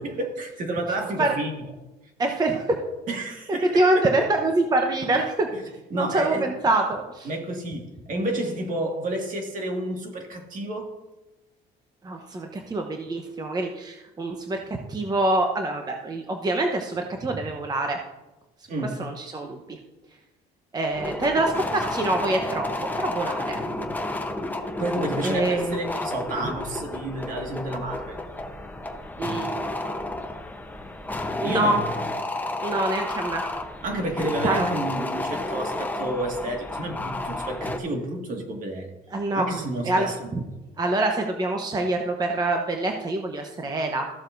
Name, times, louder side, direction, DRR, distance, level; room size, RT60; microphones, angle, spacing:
voice 1, 0.0-1.7 3.1-4.3 5.5-5.6 5.9-6.5 7.3-10.9 18.7-19.1 24.8-28.2 31.4-31.8 33.8-38.9 39.3-40.4, right 1 dB, 50° right, 2 dB, 2.0 m, -30 dB
voice 2, 2.2-2.8 3.7-5.5 5.9-7.3 12.0-18.0 19.0-19.8 20.7-22.7 23.0-23.6 25.2-25.9 29.2-29.5 31.4-31.8 32.6-33.4 34.4-34.7 39.1-40.4 40.8-44.1, right 2 dB, 25° right, 3 dB, 0.9 m, -25 dB
sound 1, 20.9-37.8, left 2 dB, 10° left, 0.9 m, -31 dB
14.5 x 7.1 x 2.6 m, 1.1 s
cardioid pair, 110°, 17 cm